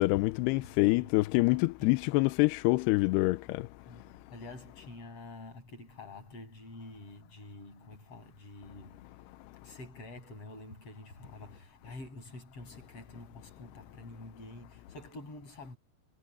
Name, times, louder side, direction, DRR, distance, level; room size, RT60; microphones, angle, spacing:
voice 1, 0.0-3.6, left 23 dB, 85° left, 2.4 m, -26 dB
voice 2, 0.5-1.2 1.8-1.9 3.8-9.1 9.6-15.8, left 2 dB, 30° left, 8.1 m, -48 dB
omnidirectional pair, 5.3 m